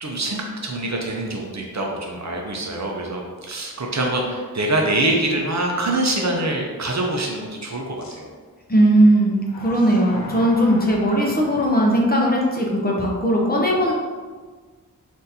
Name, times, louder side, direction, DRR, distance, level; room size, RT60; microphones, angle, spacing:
voice 1, 0.0-8.3, right 2 dB, 50° right, 0 dB, 0.6 m, -25 dB
sound 1, 2.8-2.9 3.5-3.6 8.0-8.2 9.4-11.7, left 2 dB, 80° left, 0.6 m, -38 dB
voice 2, 8.7-13.9, right 1 dB, 25° left, -2 dB, 0.6 m, -18 dB
3.6 x 2.6 x 2.7 m, 1.5 s
wide cardioid pair, 65°, 35 cm